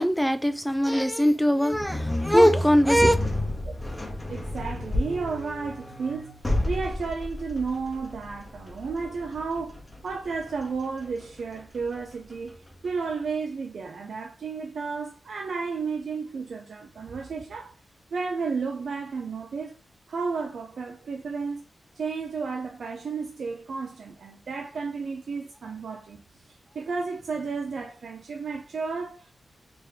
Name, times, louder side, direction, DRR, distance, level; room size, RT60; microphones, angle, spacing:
voice 1, 0.0-3.2, equal, ahead, 0.4 m, -21 dB
sound 1, 1.7-12.9, left 1 dB, 20° left, 0.9 m, -32 dB
voice 2, 4.3-6.4 6.6-17.7 18.1-19.8 20.1-21.6 22.0-26.2 26.7-29.3, right 4 dB, 75° right, 0.4 m, -32 dB
3.5 x 2.9 x 3.3 m
wide cardioid pair, 100°, 0 cm